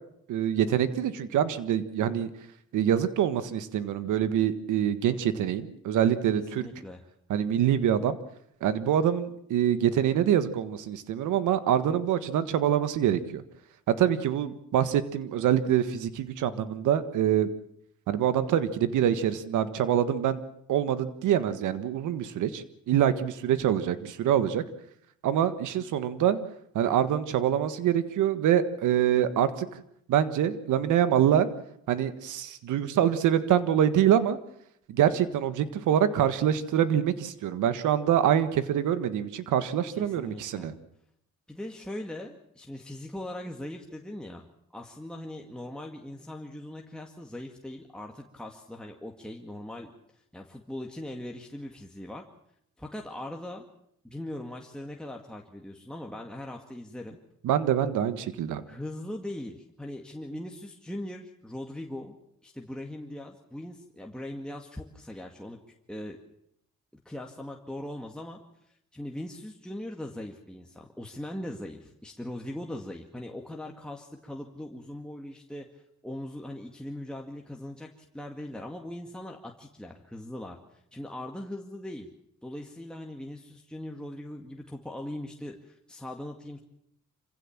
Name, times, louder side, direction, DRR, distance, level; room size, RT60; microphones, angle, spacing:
voice 1, 0.3-2.3 2.7-6.7 7.3-8.2 8.6-13.4 13.9-17.5 18.1-20.4 20.7-24.6 25.2-26.4 26.7-29.7 30.1-31.5 31.9-34.4 34.9-40.7 57.4-58.6, right 10 dB, 80° right, 12 dB, 1.6 m, -25 dB
voice 2, 6.5-7.0 39.9-40.7 41.5-44.5 44.7-52.2 52.8-53.7 54.0-57.2 58.7-62.1 62.4-65.6 65.9-66.2 67.1-68.4 68.7-82.1 82.4-86.6, left 1 dB, 5° left, 1 dB, 2.0 m, -40 dB
26.5 x 16.0 x 7.4 m, 0.75 s
cardioid pair, 90°, 30 cm